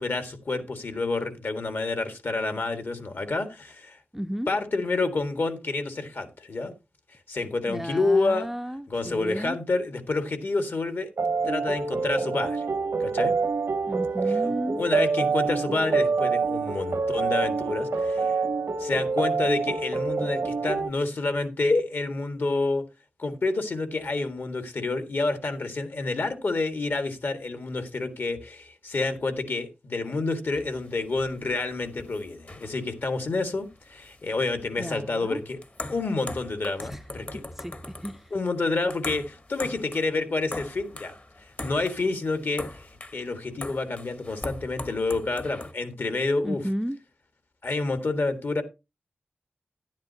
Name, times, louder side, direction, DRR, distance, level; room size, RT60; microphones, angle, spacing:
voice 1, 0.0-4.0 4.5-6.7 7.3-8.5 8.9-11.1 11.4-12.6 13.0-13.3 14.8-18.4 18.8-22.8 23.2-35.6 35.9-37.4 38.3-41.1 41.6-46.6 47.6-48.6, left 3 dB, 60° left, 1.7 m, -28 dB
voice 2, 4.1-4.5 7.7-9.6 13.9-14.8 34.8-35.4 36.8-37.0 37.6-37.8 38.0-38.3 46.4-47.0, equal, 5° right, 0.5 m, -33 dB
sound 1, 11.2-20.9, right 4 dB, 75° right, 0.8 m, -26 dB
sound 2, 30.5-45.7, left 2 dB, 40° left, 1.1 m, -41 dB
11.5 x 10.5 x 2.8 m
wide cardioid pair, 80°, 4 cm